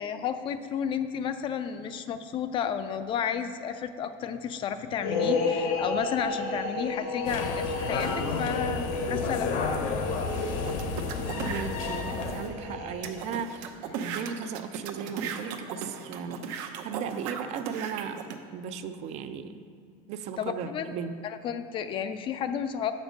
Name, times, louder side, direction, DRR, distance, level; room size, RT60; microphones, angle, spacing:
voice 1, 0.0-9.5 20.4-20.9 21.2-22.9, left 8 dB, 35° left, 10 dB, 0.3 m, -32 dB
sound 1, 5.0-13.5, left 3 dB, 80° left, 1.3 m, -33 dB
sound 2, 7.2-12.5, left 4 dB, 55° left, 0.8 m, -31 dB
sound 3, 10.6-11.7 12.3-12.4 12.6-12.7 13.0-18.4, right 7 dB, 85° right, 0.7 m, -36 dB
voice 2, 11.4-13.7 14.0-16.4 16.8-18.3 18.5-19.6 20.1-21.2, right 7 dB, 45° right, 10 dB, 0.4 m, -36 dB
7.1 x 5.2 x 6.3 m, 2.3 s
cardioid pair, 155°, 15 cm